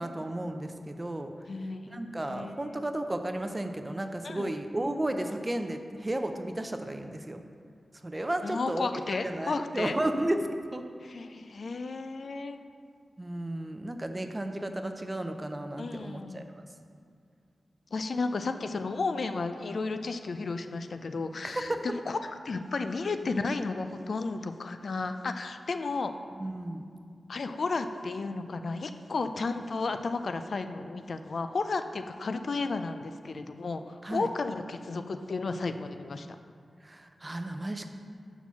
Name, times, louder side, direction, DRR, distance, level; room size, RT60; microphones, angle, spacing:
voice 1, 0.0-1.3 1.9-7.4 8.0-8.9 9.2-10.4 10.7-10.8 13.2-16.4 21.4-21.8 26.4-26.8 34.0-34.3 36.8-37.9, right 1 dB, 20° right, 6 dB, 0.4 m, -33 dB
voice 2, 1.5-2.8 4.2-4.5 8.4-10.0 11.0-12.6 15.8-16.5 17.9-26.1 27.3-36.3, left 3 dB, 65° left, 8 dB, 0.3 m, -33 dB
5.9 x 4.3 x 5.7 m, 2.2 s
wide cardioid pair, 85°, 0 cm